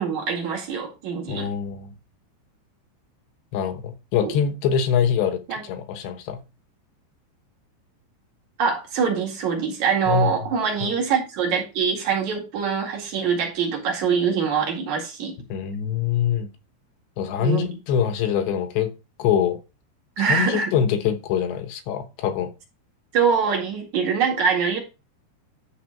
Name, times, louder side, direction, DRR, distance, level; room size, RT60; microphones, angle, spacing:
voice 1, 0.0-1.5 4.2-4.4 5.5-5.6 8.6-15.3 17.4-17.6 20.2-20.7 23.1-24.8, right 6 dB, 50° right, 2.7 m, -24 dB
voice 2, 1.3-1.9 3.5-5.4 5.7-6.4 10.1-10.3 10.8-10.9 15.5-16.5 17.2-18.9 19.2-19.6 20.2-22.5, left 8 dB, 70° left, 3.2 m, -24 dB
11.5 x 4.2 x 6.0 m
omnidirectional pair, 5.6 m